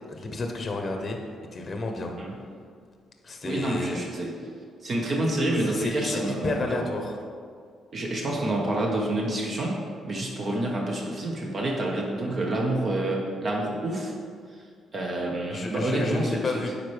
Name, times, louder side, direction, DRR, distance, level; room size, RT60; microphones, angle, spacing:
voice 1, 0.1-1.2 1.5-2.1 3.2-4.0 5.7-7.1 15.5-16.7, left 2 dB, 40° left, 3 dB, 0.8 m, -31 dB
voice 2, 3.4-4.3 4.8-6.8 7.9-9.8 10.0-14.1 14.9-16.7, right 1 dB, 45° right, -2 dB, 1.1 m, -28 dB
9.1 x 4.3 x 3.3 m, 2.1 s
cardioid pair, 90°, 0 cm